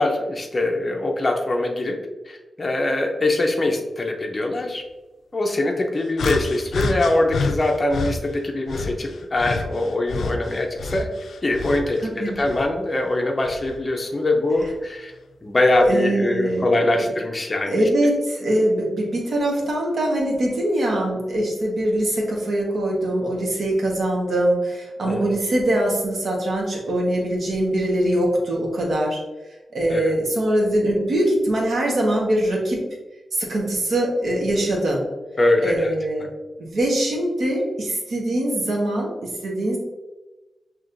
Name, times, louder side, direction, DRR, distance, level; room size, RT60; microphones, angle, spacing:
voice 1, 0.0-2.0 2.3-4.8 5.3-11.1 11.4-15.1 15.4-17.8 25.1-25.4 29.9-30.1 35.4-35.9, left 2 dB, 25° left, 2 dB, 0.6 m, -22 dB
sound 1, 6.2-8.2 8.7-12.0 12.3-13.8 14.6-14.8 15.7-15.9, left 3 dB, 90° left, 0.4 m, -29 dB
voice 2, 12.0-12.4 15.9-16.9 17.7-29.2 29.7-32.8 33.3-35.1 35.6-36.3 36.6-39.8, right 1 dB, 60° right, -1 dB, 1.1 m, -22 dB
6.1 x 3.1 x 2.5 m, 1.1 s
wide cardioid pair, 165°, 0 cm